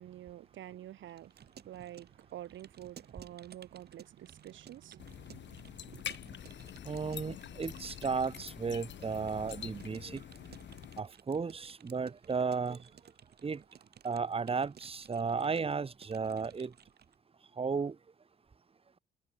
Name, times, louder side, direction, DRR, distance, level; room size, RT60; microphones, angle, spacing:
voice 1, 0.0-1.3 1.6-6.0, right 12 dB, 75° right, 1.6 m, -48 dB
Keyboard (musical) / Computer keyboard, 1.1-17.2, right 8 dB, 55° right, 4.8 m, -57 dB
sound 1, 5.0-11.0, left 10 dB, 65° left, 6.2 m, -46 dB
voice 2, 6.8-10.2 11.0-12.8 13.4-13.6 14.0-16.7 17.6-17.9, right 5 dB, 30° right, 1.5 m, -34 dB
cardioid pair, 90°, 20 cm